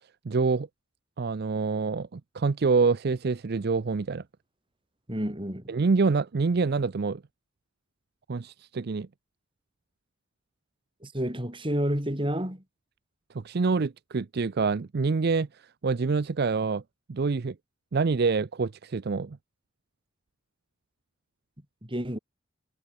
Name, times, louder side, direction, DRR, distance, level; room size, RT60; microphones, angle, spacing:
voice 1, 0.2-0.7 1.2-4.2 5.7-7.2 8.3-9.1 13.3-16.8 17.1-17.6 17.9-19.4, right 4 dB, 50° right, 0.5 m, -26 dB
voice 2, 5.1-5.7 11.0-12.6 21.8-22.2, equal, 25° right, 3.9 m, -30 dB
head